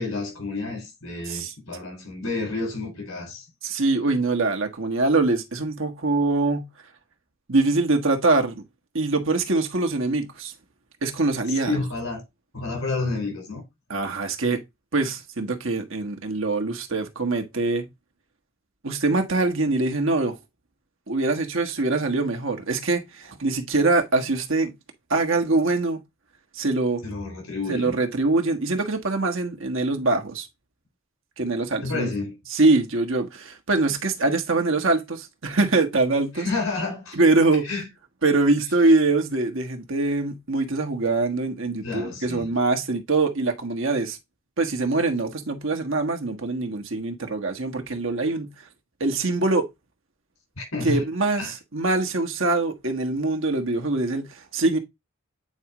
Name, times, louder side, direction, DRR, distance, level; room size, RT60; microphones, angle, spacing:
voice 1, 0.0-3.4 11.7-12.2 12.5-13.6 27.0-27.9 31.8-32.3 36.3-37.2 37.6-37.9 41.8-42.5 50.6-51.0 51.4-51.5, left 3 dB, 85° left, 4.7 m, -30 dB
voice 2, 3.6-6.7 7.5-8.6 8.9-10.5 11.0-11.8 13.9-14.6 14.9-17.9 18.8-20.4 21.1-24.7 25.1-26.0 26.5-27.0 27.7-30.5 31.4-32.1 32.5-36.4 37.2-37.7 38.2-44.2 44.6-48.5 49.0-49.7 50.8-54.8, right 3 dB, 70° right, 1.5 m, -23 dB
8.9 x 4.9 x 3.0 m
head